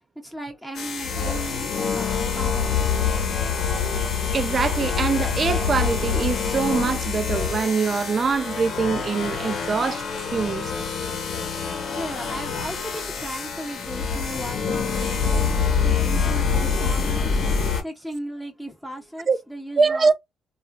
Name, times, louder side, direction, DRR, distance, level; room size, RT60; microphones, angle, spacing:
voice 1, 0.2-2.8 11.9-17.4 17.8-20.1, equal, 5° left, 0.7 m, -36 dB
sound 1, 0.7-17.8, left 6 dB, 70° left, 0.9 m, -26 dB
voice 2, 4.3-10.0 10.3-10.7 19.3-19.4 19.8-20.1, right 5 dB, 40° right, 0.4 m, -23 dB
sound 2, 13.7-17.7, left 2 dB, 35° left, 0.4 m, -27 dB
3.0 x 2.4 x 2.2 m
cardioid pair, 90°, 0 cm